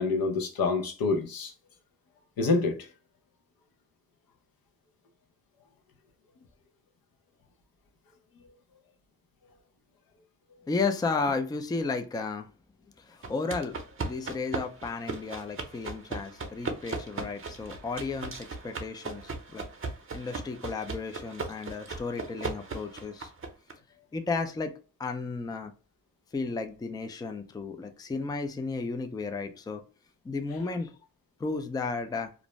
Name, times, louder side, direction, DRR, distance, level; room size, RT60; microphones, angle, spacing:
voice 1, 0.0-1.5 2.4-2.9, left 3 dB, 85° left, 0.7 m, -27 dB
voice 2, 10.7-12.5 13.0-19.6 20.1-23.3 24.1-24.7 25.0-25.7 26.3-29.8 30.2-31.0 31.4-32.3, left 4 dB, 10° left, 0.3 m, -33 dB
sound 1, 13.2-23.7, right 3 dB, 40° right, 0.6 m, -38 dB
2.5 x 2.0 x 3.0 m
cardioid pair, 90°, 34 cm